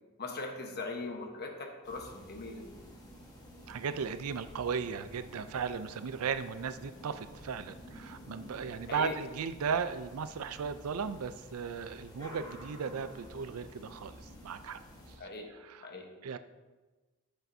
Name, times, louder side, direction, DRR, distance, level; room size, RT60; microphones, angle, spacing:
voice 1, 0.2-2.7 8.9-9.2 15.2-15.5 15.8-16.1, left 3 dB, 50° left, 2 dB, 1.1 m, -40 dB
sound 1, 1.8-15.2, equal, 20° left, 1.4 m, -51 dB
voice 2, 3.7-14.1 14.4-14.8 15.5-15.9 16.2-16.4, right 6 dB, 90° right, 12 dB, 0.4 m, -36 dB
10.0 x 6.8 x 2.7 m, 1.2 s
head